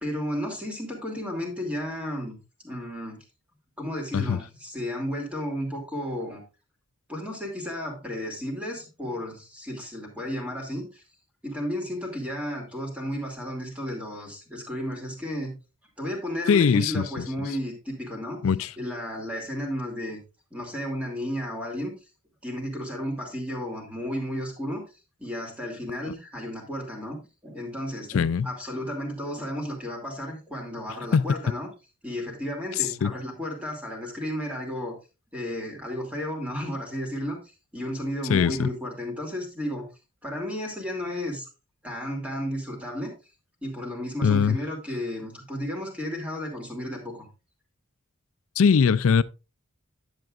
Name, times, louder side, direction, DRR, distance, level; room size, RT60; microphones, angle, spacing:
voice 1, 0.0-2.4 2.6-3.2 3.8-6.4 7.1-11.0 11.4-15.5 16.0-18.4 18.8-20.2 20.5-21.9 22.4-24.8 25.2-31.7 32.0-34.9 35.3-37.4 37.7-39.9 40.2-41.5 41.8-43.1 43.6-47.3, equal, 5° right, 2.6 m, -33 dB
voice 2, 16.5-17.0 18.4-18.7 28.1-28.5 31.1-31.2 33.0-33.1 38.3-38.7 44.2-44.6 48.6-49.2, left 6 dB, 70° left, 0.4 m, -20 dB
10.5 x 8.1 x 2.4 m
head